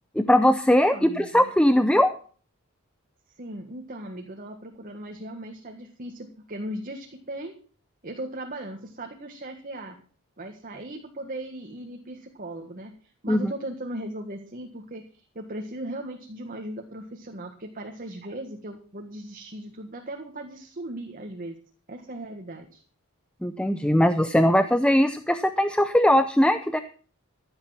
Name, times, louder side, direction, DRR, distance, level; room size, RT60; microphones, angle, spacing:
voice 1, 0.2-2.1 13.3-13.5 23.4-26.8, left 1 dB, 5° left, 10 dB, 0.6 m, -20 dB
voice 2, 0.7-1.5 3.4-7.6 8.0-10.0 10.4-21.5 21.9-22.8, right 1 dB, 40° right, 3 dB, 1.7 m, -38 dB
15.0 x 8.8 x 5.8 m, 0.42 s
head